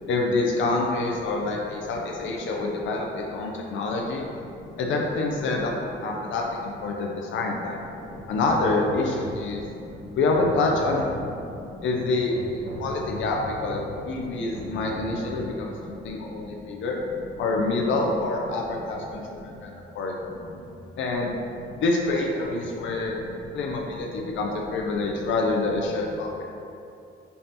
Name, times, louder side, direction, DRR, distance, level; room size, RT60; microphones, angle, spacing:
voice 1, 0.1-4.2 4.8-5.7 6.0-7.8 8.3-9.6 10.2-11.4 11.8-17.0 17.4-20.1 21.0-21.4 21.8-23.2 23.5-26.5, left 3 dB, 75° left, 0 dB, 0.5 m, -27 dB
voice 2, 4.5-4.8 8.1-8.3 9.6-10.2 11.4-11.7 12.8-12.9 14.3-14.8 15.6-16.6 19.4-19.6 20.2-20.6 21.7-21.8 23.2-23.3 24.2-24.3, left 2 dB, 20° left, -3 dB, 0.9 m, -44 dB
Hammer, 8.1-9.5 9.9-11.3 11.9-14.0 14.5-15.5, equal, 65° right, 1.4 m, -38 dB
5.5 x 3.3 x 2.8 m, 2.7 s
cardioid pair, 90°, 20 cm